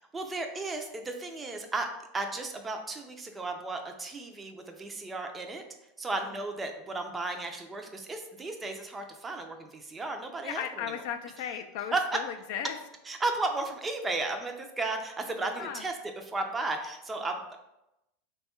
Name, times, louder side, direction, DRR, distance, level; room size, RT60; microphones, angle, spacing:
voice 1, 0.1-1.9 2.1-5.6 6.0-10.6 11.9-12.0 13.1-15.9 16.2-17.6, right 3 dB, 15° right, 4 dB, 0.4 m, -34 dB
voice 2, 10.4-12.8 15.6-15.8, left 8 dB, 65° left, 7 dB, 0.3 m, -36 dB
3.4 x 2.3 x 4.2 m, 0.89 s
supercardioid pair, 135°, 0 cm